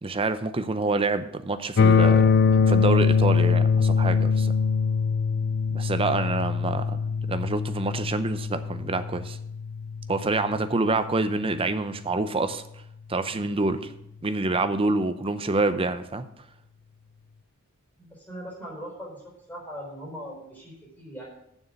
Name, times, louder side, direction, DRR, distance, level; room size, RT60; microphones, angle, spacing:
voice 1, 0.0-2.3 2.7-4.5 5.7-7.0 7.3-9.4 10.1-12.6 13.1-13.9 14.2-16.3, right 3 dB, 25° right, 10 dB, 0.6 m, -27 dB
sound 1, 1.8-11.7, left 5 dB, 55° left, 0.5 m, -23 dB
voice 2, 18.0-21.3, equal, 10° left, -4 dB, 4.2 m, -40 dB
7.1 x 6.6 x 7.9 m, 0.75 s
head